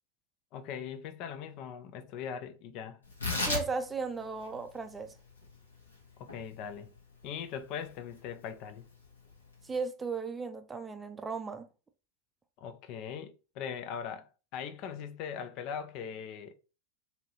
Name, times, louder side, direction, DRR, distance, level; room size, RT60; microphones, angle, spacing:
voice 1, 0.5-3.0 6.2-6.9 7.2-8.9 12.6-16.5, left 7 dB, 45° left, 0.4 m, -40 dB
Tearing, 3.0-9.8, left 2 dB, 85° left, 1.1 m, -39 dB
voice 2, 3.5-5.1 9.6-11.7, right 4 dB, 15° right, 0.4 m, -36 dB
2.9 x 2.7 x 2.8 m
figure-of-eight pair, 90°, 0 cm